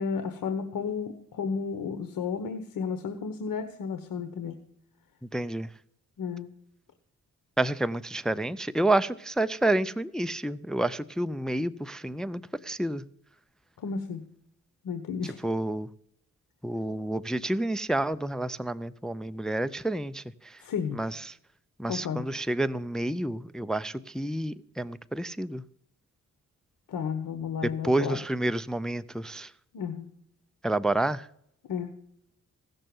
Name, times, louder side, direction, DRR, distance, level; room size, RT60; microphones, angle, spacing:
voice 1, 0.0-4.6 6.2-6.5 13.8-14.2 14.8-15.4 20.6-21.0 21.9-22.2 26.9-28.2 29.7-30.1 31.7-31.9, left 6 dB, 85° left, 1.2 m, -32 dB
voice 2, 5.3-5.7 7.6-13.0 15.2-15.9 16.6-20.6 20.9-21.4 21.8-25.6 27.6-29.5 30.6-31.3, right 1 dB, ahead, 0.4 m, -29 dB
16.5 x 6.6 x 7.7 m
cardioid pair, 90°, 32 cm